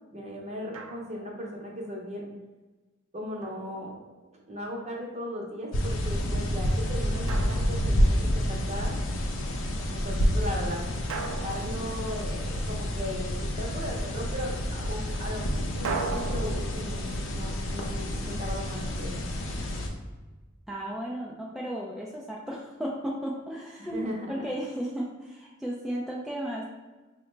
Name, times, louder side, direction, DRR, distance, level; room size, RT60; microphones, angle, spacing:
voice 1, 0.1-2.3 3.1-3.9 4.5-8.9 9.9-10.8 11.4-17.0 17.3-19.3 23.8-24.5, equal, 35° right, -1 dB, 0.7 m, -37 dB
Drum, 0.7-1.4 3.4-4.5 7.3-8.4 11.1-12.7 15.8-18.8, right 4 dB, 80° right, 0.4 m, -39 dB
sound 1, 5.7-19.9, equal, 75° left, 0.6 m, -29 dB
voice 2, 20.7-26.6, equal, ahead, -4 dB, 0.3 m, -34 dB
4.7 x 2.1 x 3.1 m, 1.2 s
head